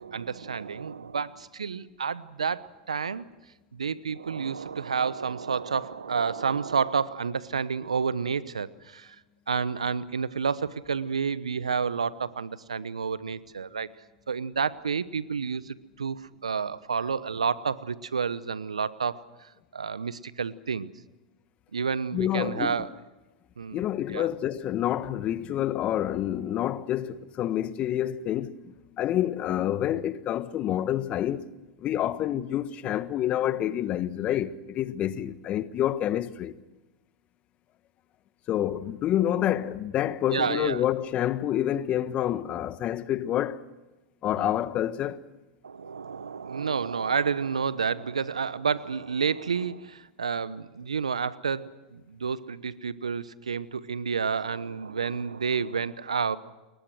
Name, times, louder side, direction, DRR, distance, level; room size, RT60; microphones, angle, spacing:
voice 1, 0.0-3.2 3.7-9.2 9.5-13.9 14.3-20.9 21.7-22.9 23.6-24.3 40.3-40.8 44.4-44.5 45.6-56.4, right 6 dB, 85° right, 1.0 m, -30 dB
voice 2, 22.1-22.8 23.7-28.6 29.0-31.4 31.8-36.5 38.5-43.6 44.2-45.2, left 12 dB, 40° left, 1.4 m, -28 dB
29.0 x 22.5 x 6.3 m
hypercardioid pair, 90°, 3 cm